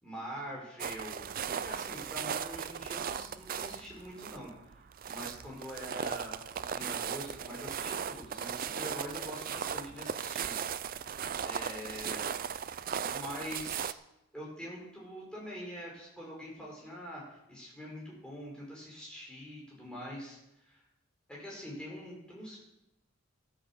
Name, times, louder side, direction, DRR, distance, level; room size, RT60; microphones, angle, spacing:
voice 1, 0.0-1.2 1.5-10.5 11.4-12.4 13.1-14.0 14.3-20.8 21.3-22.6, equal, 5° left, -4 dB, 5.1 m, -44 dB
sound 1, 0.8-13.9, right 8 dB, 40° right, 0.4 m, -37 dB
13.5 x 9.1 x 7.3 m, 0.89 s
head